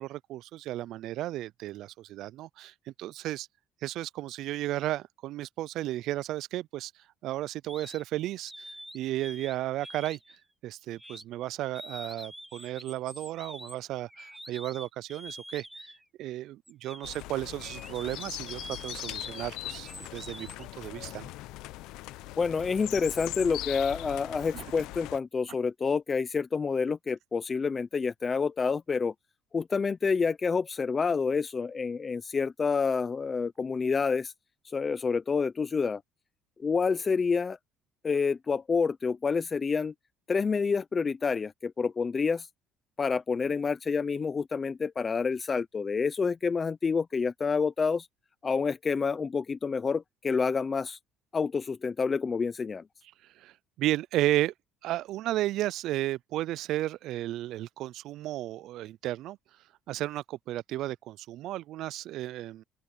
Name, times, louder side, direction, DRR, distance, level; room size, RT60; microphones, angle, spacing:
voice 1, 0.0-3.5 3.8-10.2 10.6-15.9 16.2-21.3 24.5-24.7 53.4-54.5 54.8-59.4 59.9-62.6, right 15 dB, 65° right, 0.3 m, -34 dB
sound 1, 7.7-8.0 8.5-9.6 9.8-10.4 11.0-11.2 11.7-16.1 16.7-20.7, equal, ahead, 1.6 m, -46 dB
sound 2, 17.0-25.2, left 18 dB, 75° left, 0.7 m, -40 dB
voice 2, 22.4-29.1 29.5-34.3 34.6-36.0 36.6-37.6 38.0-39.9 40.3-42.5 43.0-48.1 48.4-51.0 51.3-52.8, left 5 dB, 25° left, 0.5 m, -28 dB
open air
cardioid pair, 130°, 0 cm